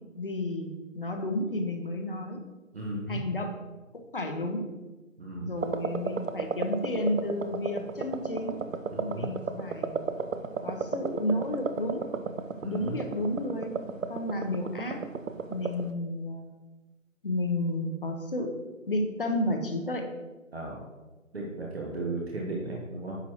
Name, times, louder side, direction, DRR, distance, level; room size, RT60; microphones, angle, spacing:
voice 1, 0.1-2.4 3.1-3.5 3.9-4.7 5.4-8.6 9.1-10.0 10.6-12.1 12.7-15.0 15.5-16.6 17.2-18.5 18.9-20.1, left 1 dB, 40° left, 5 dB, 0.9 m, -32 dB
voice 2, 2.7-3.2 5.2-5.5 8.9-9.3 12.6-13.0 20.5-20.8 21.3-23.2, right 2 dB, 50° right, -2 dB, 1.3 m, -35 dB
sound 1, 5.6-15.9, right 5 dB, 75° right, 0.7 m, -34 dB
9.8 x 6.0 x 3.0 m, 1.2 s
figure-of-eight pair, 170°, 40 cm